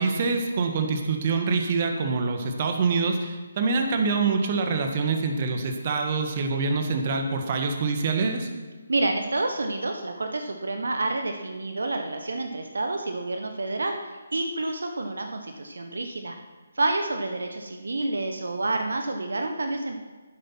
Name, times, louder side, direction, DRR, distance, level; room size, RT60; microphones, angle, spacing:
voice 1, 0.0-8.5, right 4 dB, 40° right, 5 dB, 1.6 m, -25 dB
voice 2, 8.9-16.4 16.7-20.0, right 2 dB, 70° right, 5 dB, 1.2 m, -29 dB
11.5 x 9.3 x 6.0 m, 1.3 s
figure-of-eight pair, 145°, 0 cm